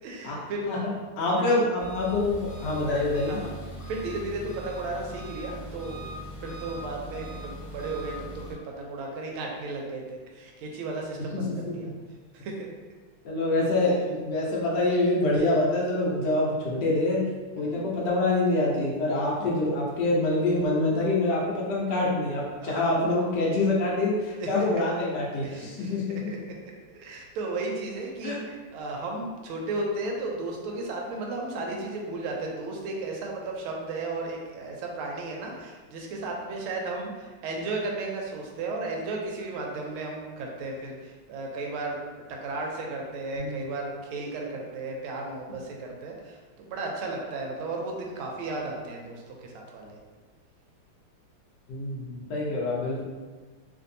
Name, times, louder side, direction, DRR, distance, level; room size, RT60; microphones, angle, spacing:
voice 1, 0.0-0.7 1.4-1.5 3.3-3.6 3.9-6.1 6.4-11.9 12.3-12.7 17.6-17.9 22.6-23.0 24.4-24.5 25.4-26.4 26.6-42.0 42.3-50.0, right 2 dB, 80° right, 0 dB, 1.4 m, -34 dB
voice 2, 0.7-3.4 11.2-11.9 13.2-17.2 17.6-26.3 28.2-28.4 43.4-43.7 51.7-53.0, left 2 dB, 70° left, -4 dB, 1.1 m, -26 dB
Engine, 1.8-8.5, equal, ahead, 0.4 m, -40 dB
3.3 x 2.6 x 2.6 m, 1.4 s
omnidirectional pair, 2.4 m